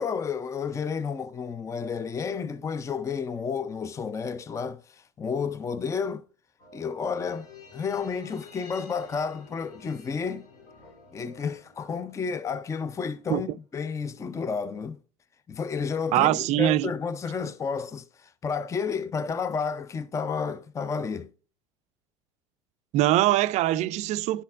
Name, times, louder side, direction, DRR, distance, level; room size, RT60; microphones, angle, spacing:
voice 1, 0.0-6.3 6.7-7.5 7.7-10.5 11.1-15.0 15.5-21.3, left 5 dB, 20° left, 0.5 m, -31 dB
sound 1, 6.6-13.2 13.5-13.6, left 4 dB, 60° left, 3.0 m, -51 dB
voice 2, 16.1-16.9 22.9-24.4, right 15 dB, 45° right, 0.4 m, -23 dB
11.0 x 4.2 x 3.5 m
figure-of-eight pair, 65°, 17 cm